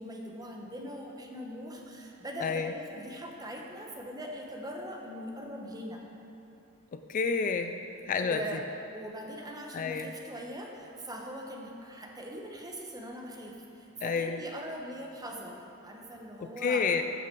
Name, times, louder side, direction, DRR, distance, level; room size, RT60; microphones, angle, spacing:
voice 1, 0.0-6.0 8.2-8.6 8.9-16.9, equal, 20° right, 0 dB, 1.0 m, -41 dB
voice 2, 2.4-2.7 6.9-7.7 8.1-8.4 9.7-10.1 14.0-14.4 16.4-17.0, left 5 dB, 40° left, 7 dB, 0.3 m, -29 dB
14.5 x 5.9 x 4.6 m, 2.8 s
head